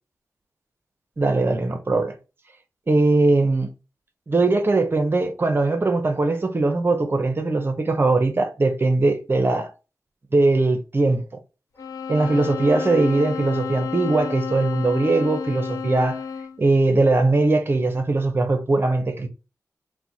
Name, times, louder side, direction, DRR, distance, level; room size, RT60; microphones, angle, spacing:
voice 1, 1.2-2.1 2.9-3.7 4.3-9.7 10.3-11.3 12.1-16.2 16.6-19.3, right 2 dB, 40° right, 0.7 m, -20 dB
sound 1, 11.8-16.7, left 6 dB, 70° left, 0.7 m, -31 dB
4.5 x 2.1 x 3.9 m
wide cardioid pair, 100°, 6 cm